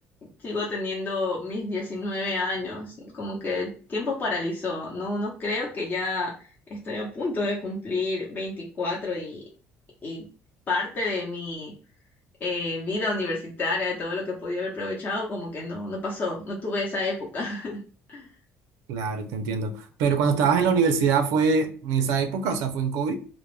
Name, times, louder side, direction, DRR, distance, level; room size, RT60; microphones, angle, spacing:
voice 1, 0.4-6.3 6.7-9.4 10.0-10.2 10.7-11.7 12.4-17.8 18.1-18.3, left 2 dB, 35° left, -3 dB, 0.7 m, -29 dB
voice 2, 18.9-23.1, right 5 dB, 85° right, 7 dB, 0.4 m, -23 dB
2.2 x 2.1 x 3.1 m, 0.39 s
cardioid pair, 115°, 5 cm